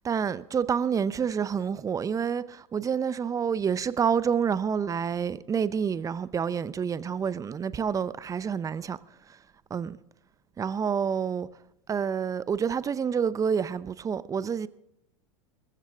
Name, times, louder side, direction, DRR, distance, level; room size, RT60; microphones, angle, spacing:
voice 1, 0.0-9.0 9.3-9.4 9.7-10.0 10.6-11.5 11.9-14.7, right 7 dB, 20° right, 0.7 m, -28 dB
20.5 x 15.0 x 3.6 m
figure-of-eight pair, 90°, 17 cm